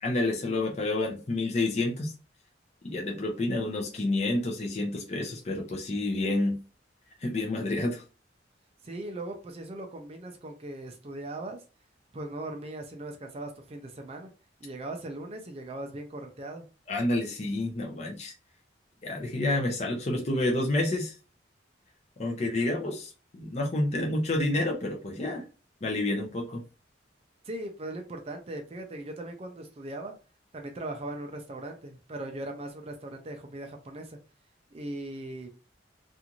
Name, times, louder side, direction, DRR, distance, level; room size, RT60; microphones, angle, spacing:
voice 1, 0.0-2.1 2.8-6.6 7.2-8.0 16.9-18.3 19.0-21.1 22.2-25.4 25.8-26.6, left 2 dB, 35° left, 0 dB, 0.5 m, -29 dB
voice 2, 8.8-11.6 12.1-14.3 14.6-16.7 27.4-30.1 30.5-34.2 34.7-35.5, right 1 dB, 30° right, 4 dB, 0.4 m, -39 dB
2.5 x 2.4 x 2.9 m, 0.34 s
head